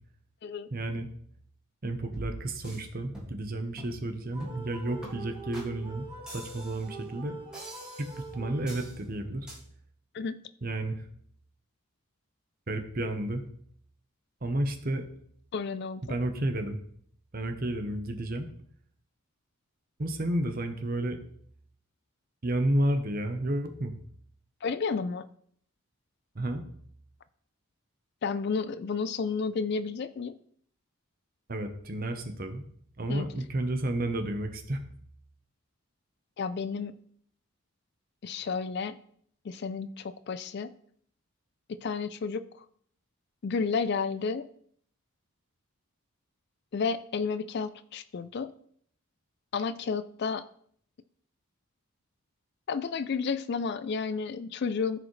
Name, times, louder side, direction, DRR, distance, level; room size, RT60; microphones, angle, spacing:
voice 1, 0.7-1.1 1.8-6.1 6.3-7.4 8.0-8.1 8.3-9.5 10.6-11.0 12.7-13.4 14.4-15.1 16.0-16.8 17.3-18.5 20.0-21.2 22.4-24.0 26.3-26.7 31.5-32.6 33.0-34.8, right 1 dB, 40° right, 7 dB, 0.9 m, -31 dB
sound 1, 2.1-2.8 3.1-3.5 3.8-4.0 4.4-4.7 5.0-5.1 5.5-5.7 6.3-6.9 7.5-8.2 8.7-9.0 9.5-9.6, right 1 dB, 5° right, 2.0 m, -43 dB
sound 2, 4.3-9.2, right 4 dB, 20° right, 1.4 m, -44 dB
voice 2, 15.5-16.2 24.6-25.3 28.2-30.4 33.1-33.3 36.4-36.9 38.2-39.0 39.4-40.7 41.7-42.6 43.4-44.5 46.7-48.5 49.5-50.4 52.7-55.0, left 5 dB, 50° left, 14 dB, 0.4 m, -31 dB
14.0 x 4.9 x 3.2 m, 0.63 s
head